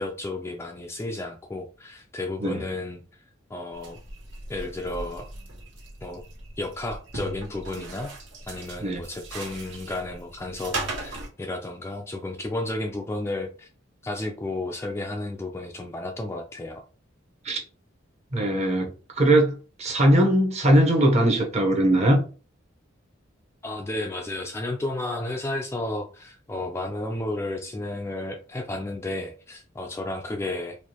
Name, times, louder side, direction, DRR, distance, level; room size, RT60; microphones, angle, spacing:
voice 1, 0.0-3.0 3.5-4.0 4.5-5.3 6.0-6.2 6.6-8.1 8.5-13.7 14.0-16.8 23.6-30.8, left 2 dB, 15° left, 0.3 m, -32 dB
sound 1, 3.7-11.3, right 2 dB, 70° right, 1.4 m, -38 dB
voice 2, 18.3-18.9 19.2-22.2, right 1 dB, 35° right, 0.8 m, -20 dB
4.5 x 2.4 x 2.9 m
head